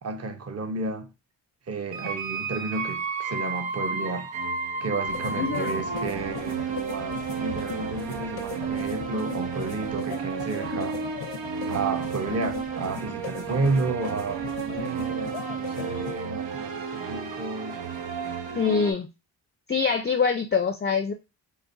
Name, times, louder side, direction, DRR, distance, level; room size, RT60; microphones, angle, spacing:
voice 1, 0.0-1.1 1.7-4.3 4.8-11.0 11.7-17.8, right 3 dB, 35° right, 0.8 m, -32 dB
sound 1, 1.9-18.9, right 5 dB, 70° right, 0.7 m, -32 dB
sound 2, 5.1-16.2, left 8 dB, 75° left, 0.7 m, -39 dB
voice 2, 5.4-5.8 18.6-19.1 19.7-21.1, left 5 dB, 25° left, 0.5 m, -24 dB
5.0 x 2.1 x 2.6 m
supercardioid pair, 45°, 46 cm